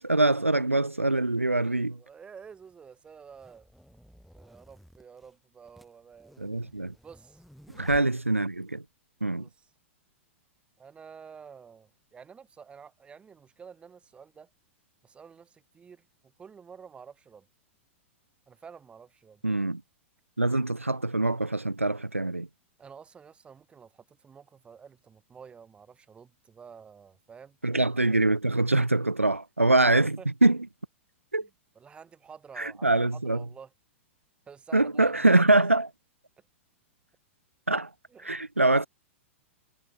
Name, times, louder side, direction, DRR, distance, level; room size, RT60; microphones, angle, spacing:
voice 1, 0.0-2.0 6.4-6.9 7.7-8.8 9.2-9.5 19.4-19.8 20.4-22.5 27.6-30.6 31.3-31.5 32.6-33.4 34.7-35.9 37.7-37.9 38.2-38.9, right 2 dB, 90° right, 0.4 m, -24 dB
voice 2, 1.9-3.7 4.3-6.6 7.0-7.4 9.3-9.7 10.8-14.5 15.0-16.0 16.4-17.5 18.5-19.4 22.8-27.6 29.9-30.3 31.4-31.5 31.8-33.7 34.5-35.6 38.1-38.3 38.6-38.8, right 6 dB, 15° right, 3.8 m, -50 dB
sound 1, 2.4-8.8, equal, ahead, 4.1 m, -55 dB
figure-of-eight pair, 100°, 7 cm